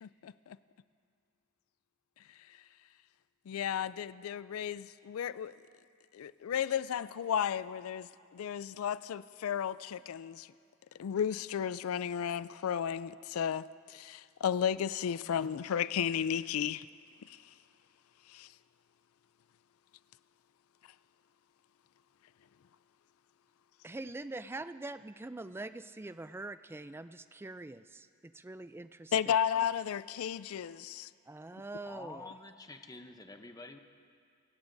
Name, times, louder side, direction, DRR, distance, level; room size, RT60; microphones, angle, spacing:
voice 1, 0.0-0.6 3.5-5.5 6.1-10.5 11.0-16.9 17.3-17.4 18.3-18.5 29.1-31.1, left 8 dB, 75° left, 0.4 m, -33 dB
voice 2, 23.8-29.4 31.3-32.3, right 2 dB, 10° right, 0.3 m, -44 dB
voice 3, 31.8-33.8, left 2 dB, 15° left, 0.8 m, -48 dB
27.5 x 16.5 x 2.6 m
head